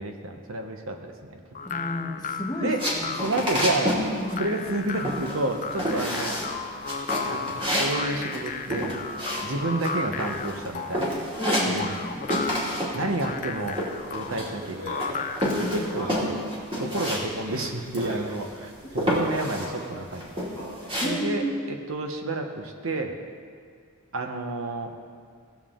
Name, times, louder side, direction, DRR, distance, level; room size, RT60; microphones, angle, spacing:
voice 1, 0.0-1.4 2.6-2.9 3.2-4.0 4.4-6.4 7.3-8.9 9.4-11.2 11.7-12.1 12.9-13.8 14.1-15.2 15.6-16.4 16.7-20.3 21.0-23.2 24.1-24.9, right 2 dB, 70° right, 4 dB, 1.0 m, -30 dB
sound 1, 1.5-15.8, left 5 dB, 40° left, 0.6 m, -34 dB
voice 2, 1.6-3.2 4.0-4.5 11.4-12.2 15.5-15.9 21.0-21.5, equal, 20° left, 1 dB, 1.1 m, -32 dB
sound 2, 2.8-4.1 4.3-4.8 5.0-5.5 5.8-6.5 6.9-9.9 10.2-10.7 10.9-12.1 12.3-13.0 13.2-14.7 15.0-17.2 17.5-17.6 17.9-18.5 19.0-19.7 20.1-21.1, equal, 25° right, 2.6 m, -28 dB
Speech, 14.3-16.4 17.3-18.4 18.9-20.0 20.4-21.0, right 1 dB, 90° right, 2.6 m, -41 dB
18.0 x 7.3 x 3.7 m, 2.1 s
head